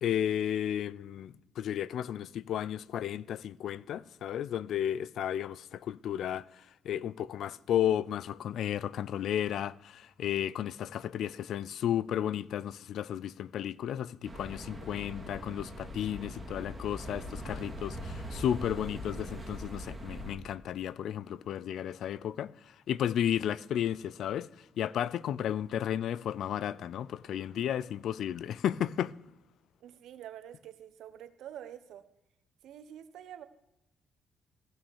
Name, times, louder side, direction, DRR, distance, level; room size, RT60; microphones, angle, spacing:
voice 1, 0.0-22.5 22.9-29.1, left 10 dB, 70° left, 0.4 m, -33 dB
sound 1, 14.2-20.4, equal, 10° right, 2.4 m, -41 dB
voice 2, 29.8-32.0 32.6-33.4, right 10 dB, 80° right, 1.0 m, -47 dB
15.5 x 6.2 x 6.4 m
cardioid pair, 90°, 0 cm